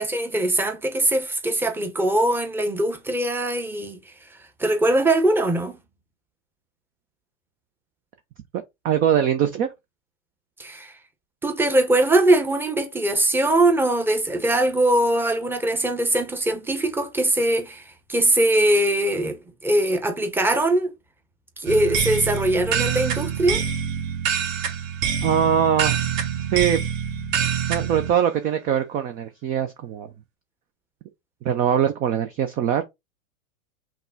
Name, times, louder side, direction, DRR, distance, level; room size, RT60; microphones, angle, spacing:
voice 1, 0.0-4.1 4.6-5.8 10.6-10.9 11.4-20.9 21.6-23.6, right 1 dB, 5° right, 0.7 m, -21 dB
voice 2, 8.5-9.7 25.2-26.0 26.5-26.8 27.7-30.1 31.4-32.8, right 9 dB, 25° right, 0.3 m, -22 dB
sound 1, 21.7-28.1, right 8 dB, 50° right, 1.5 m, -26 dB
5.8 x 2.1 x 3.6 m
hypercardioid pair, 120°, 41 cm